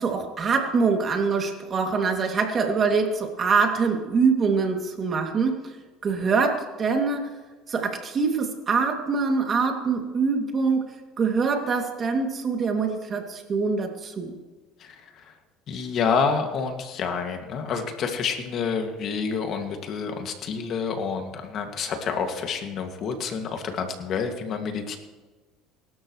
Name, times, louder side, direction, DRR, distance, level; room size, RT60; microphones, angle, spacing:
voice 1, 0.0-5.5 6.0-7.3 7.7-10.8 11.2-14.3, right 5 dB, 35° right, 3 dB, 2.6 m, -24 dB
voice 2, 14.8-15.3 15.7-25.0, left 5 dB, 50° left, 4 dB, 2.2 m, -28 dB
24.5 x 12.5 x 3.2 m, 1.3 s
supercardioid pair, 115°, 0 cm